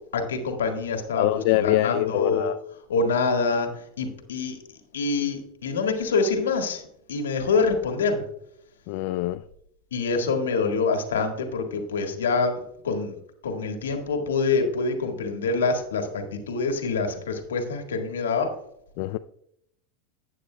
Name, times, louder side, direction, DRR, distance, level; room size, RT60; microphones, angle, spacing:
voice 1, 0.1-1.3 1.5-2.5 2.9-4.6 4.9-6.8 7.1-8.2 9.9-13.1 13.4-18.5, left 4 dB, 90° left, 1.7 m, -25 dB
voice 2, 1.2-2.6 8.9-9.4 19.0-19.2, left 16 dB, 60° left, 0.3 m, -24 dB
12.0 x 8.8 x 2.2 m
hypercardioid pair, 105°, 0 cm